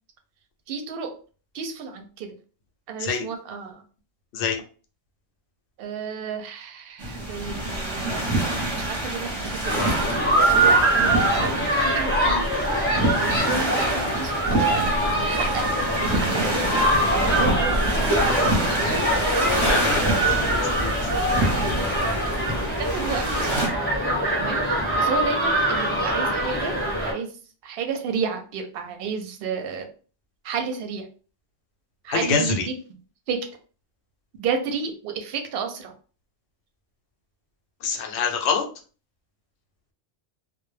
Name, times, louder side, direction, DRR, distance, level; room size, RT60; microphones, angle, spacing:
voice 1, 0.7-1.1 1.5-2.3 2.9-3.8 5.8-8.4 8.7-10.0 10.4-12.5 13.1-14.3 14.7-14.8 15.1-15.6 16.0-18.0 22.7-23.6 24.4-27.3 27.6-29.9 30.4-31.0 32.0-32.7 33.3-33.4 34.4-35.9, right 5 dB, 65° right, 5 dB, 0.7 m, -32 dB
sound 1, 7.0-23.7, right 1 dB, 30° right, 0.6 m, -27 dB
sound 2, 9.6-27.1, right 1 dB, 10° left, 0.9 m, -23 dB
voice 2, 19.4-21.1 32.1-32.7 37.8-38.6, left 6 dB, 70° left, 2 dB, 0.8 m, -26 dB
2.2 x 2.0 x 3.1 m, 0.38 s
omnidirectional pair, 1.2 m